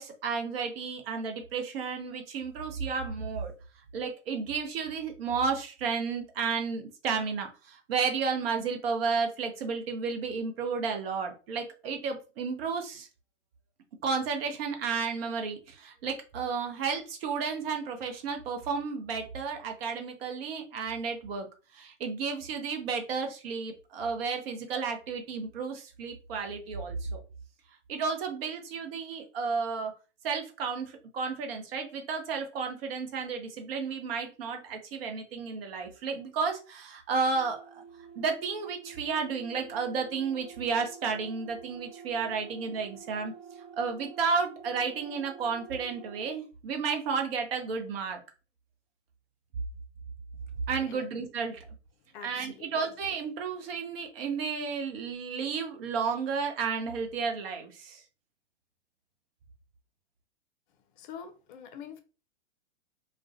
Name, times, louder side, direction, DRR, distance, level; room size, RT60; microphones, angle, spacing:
voice 1, 0.0-3.5 3.9-13.1 14.0-21.5 21.7-27.2 27.9-29.9 30.2-37.8 38.2-43.3 43.8-48.2 50.7-51.6 52.2-58.0, right 5 dB, 55° right, 0.7 m, -32 dB
sound 1, 37.3-46.4, right 6 dB, 20° right, 0.5 m, -48 dB
voice 2, 52.1-52.7 61.0-62.0, left 7 dB, 45° left, 0.5 m, -45 dB
2.3 x 2.2 x 2.5 m
hypercardioid pair, 110°, 36 cm